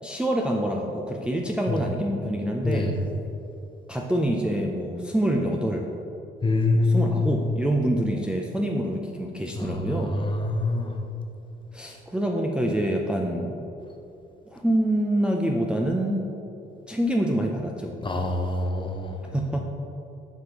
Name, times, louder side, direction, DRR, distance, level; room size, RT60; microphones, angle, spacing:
voice 1, 0.0-3.0 3.9-5.9 6.7-10.2 11.7-13.6 14.5-16.3 16.9-18.0 19.3-19.6, right 1 dB, 5° right, 0 dB, 0.5 m, -26 dB
voice 2, 6.4-7.3 9.6-10.9 18.0-19.1, left 2 dB, 25° left, 3 dB, 0.7 m, -25 dB
7.8 x 5.1 x 3.0 m, 2.8 s
cardioid pair, 90°, 20 cm